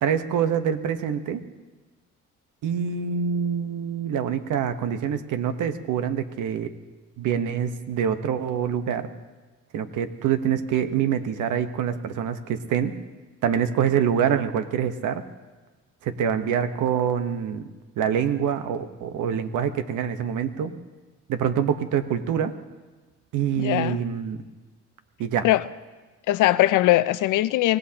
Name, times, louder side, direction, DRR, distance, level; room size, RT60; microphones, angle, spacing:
voice 1, 0.0-1.4 2.6-6.7 7.2-9.1 9.7-12.9 13.4-15.2 16.0-17.7 18.0-20.7 21.3-22.5 23.3-24.4 25.2-25.5, right 8 dB, 85° right, 1.1 m, -25 dB
voice 2, 23.6-24.0 25.4-25.6 26.3-27.8, left 15 dB, 85° left, 0.6 m, -20 dB
25.0 x 17.5 x 2.9 m
cardioid pair, 90°, 30 cm